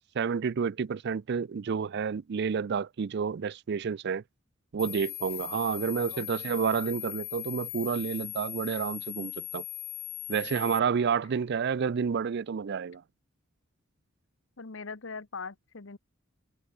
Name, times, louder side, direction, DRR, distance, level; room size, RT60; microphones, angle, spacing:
voice 1, 0.1-4.2 4.7-9.6 10.3-13.0, right 6 dB, 55° right, 0.4 m, -30 dB
sound 1, 4.8-10.8, left 16 dB, 50° left, 1.3 m, -39 dB
voice 2, 14.6-16.0, left 4 dB, 65° left, 1.1 m, -41 dB
head